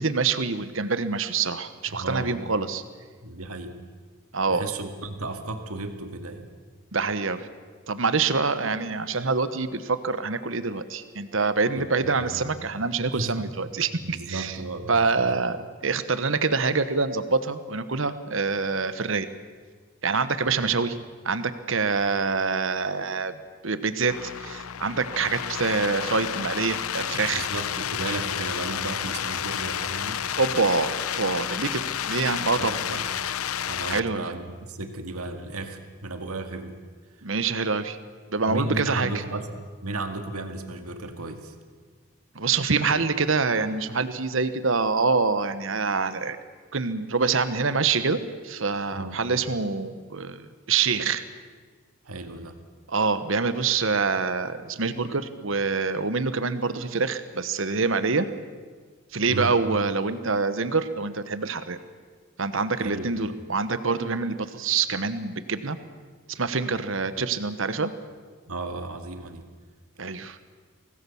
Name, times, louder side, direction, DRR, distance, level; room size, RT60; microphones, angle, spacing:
voice 1, 0.0-2.8 4.3-4.7 6.9-7.5 7.9-14.6 14.9-19.3 20.0-21.0 21.2-23.3 23.6-27.5 30.4-32.8 33.9-34.2 37.2-38.0 38.3-39.1 42.3-46.4 46.7-51.2 52.9-58.3 59.1-61.8 62.4-65.8 66.3-67.9 70.0-70.4, right 4 dB, 60° right, 12 dB, 1.1 m, -26 dB
voice 2, 1.9-2.4 3.2-3.8 4.5-6.5 11.8-11.9 12.2-12.5 13.2-13.5 14.0-15.1 20.6-20.7 27.3-30.2 32.5-33.1 33.7-36.8 38.4-39.5 39.8-41.5 48.9-49.2 52.0-52.6 59.3-59.6 62.8-63.2 67.1-67.2 68.5-69.4, right 2 dB, 85° right, 7 dB, 2.0 m, -34 dB
sound 1, 24.0-34.0, left 9 dB, 80° left, 0.7 m, -31 dB
25.0 x 18.5 x 7.1 m, 1.5 s
head